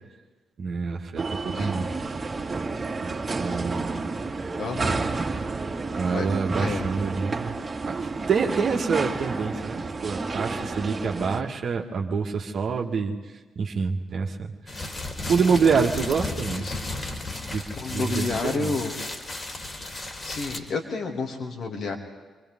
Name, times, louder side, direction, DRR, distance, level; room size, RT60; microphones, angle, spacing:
voice 1, 0.6-1.9 3.0-3.1 3.4-4.1 5.9-7.6 7.9-13.2 13.6-14.9 15.2-16.7 17.5-17.6 17.9-18.7, right 5 dB, 55° right, 0 dB, 1.8 m, -26 dB
sound 1, 1.2-11.4, right 3 dB, 35° right, 2.6 m, -30 dB
voice 2, 4.6-5.0 6.1-6.3 6.6-6.8 16.5-16.8 17.7-18.9 20.2-22.0, left 4 dB, 60° left, 1 dB, 3.0 m, -30 dB
sound 2, 14.7-20.6, left 2 dB, 35° left, 3.6 m, -34 dB
29.0 x 24.0 x 3.8 m, 1.4 s
hypercardioid pair, 40°, 0 cm